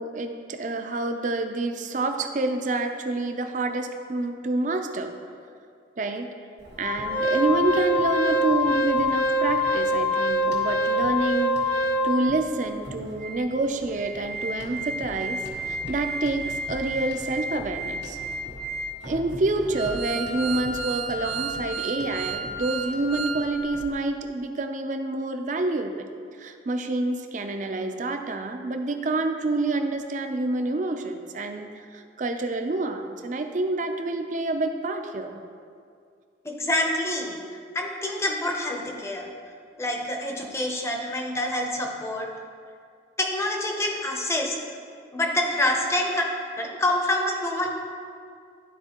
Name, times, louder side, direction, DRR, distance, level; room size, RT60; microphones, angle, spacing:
voice 1, 0.0-5.1 6.0-6.3 6.8-18.2 19.0-26.1 26.4-35.4, right 2 dB, 45° right, 6 dB, 0.5 m, -28 dB
Organ, 6.8-12.3 12.9-13.0 13.2-13.4 13.8-23.4 23.7-23.9, equal, 85° right, 1.8 m, -27 dB
voice 2, 36.4-37.4 37.7-39.3 39.8-42.3 43.2-44.5 45.1-46.2 46.6-47.7, left 1 dB, 15° left, 1 dB, 0.7 m, -26 dB
12.0 x 4.5 x 2.9 m, 2.3 s
head